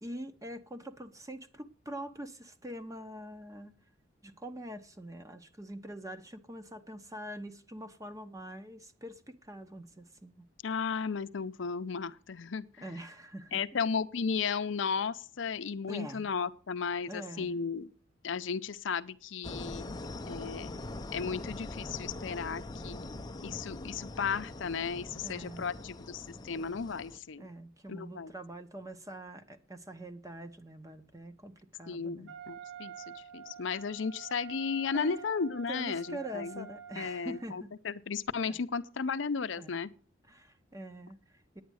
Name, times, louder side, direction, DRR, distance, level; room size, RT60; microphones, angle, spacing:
voice 1, 0.0-3.7 4.2-10.5 12.8-13.6 15.9-16.3 17.1-17.5 25.2-25.7 27.4-32.4 34.9-35.2 35.7-37.7 38.5-38.6 39.5-39.8 40.3-41.6, right 1 dB, 15° right, 0.8 m, -44 dB
voice 2, 10.6-12.7 13.5-17.9 18.2-20.0 20.3-20.7 21.1-23.1 23.4-27.5 27.9-28.3 31.9-36.7 37.0-39.9, left 5 dB, 70° left, 0.6 m, -35 dB
sound 1, 19.4-27.2, left 2 dB, 20° left, 0.5 m, -42 dB
Wind instrument woodwind instrument, 32.3-37.5, right 7 dB, 65° right, 2.3 m, -48 dB
9.5 x 9.3 x 6.2 m
head